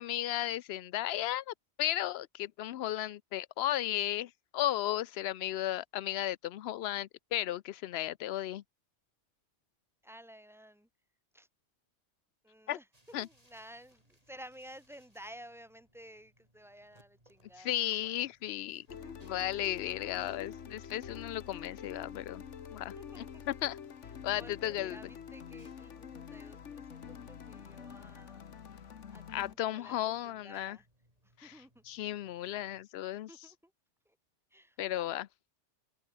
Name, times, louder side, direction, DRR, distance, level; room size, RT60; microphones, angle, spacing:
voice 1, 0.0-8.6 12.7-12.8 13.1-13.3 17.6-18.9 19.3-22.4 22.7-23.8 24.2-25.0 29.3-30.8 31.9-33.3 34.8-35.3, left 13 dB, 65° left, 0.8 m, -35 dB
voice 2, 10.0-10.9 11.3-11.5 12.4-18.3 19.0-20.4 20.8-20.9 21.3-21.9 22.7-23.5 24.0-28.5 29.1-30.9 31.2-31.8 33.3-33.7 34.0-34.2 34.5-35.1, equal, ahead, 3.0 m, -54 dB
sound 1, 12.9-32.9, right 1 dB, 30° right, 7.5 m, -70 dB
sound 2, 18.9-29.5, left 7 dB, 85° left, 1.5 m, -47 dB
omnidirectional pair, 1.2 m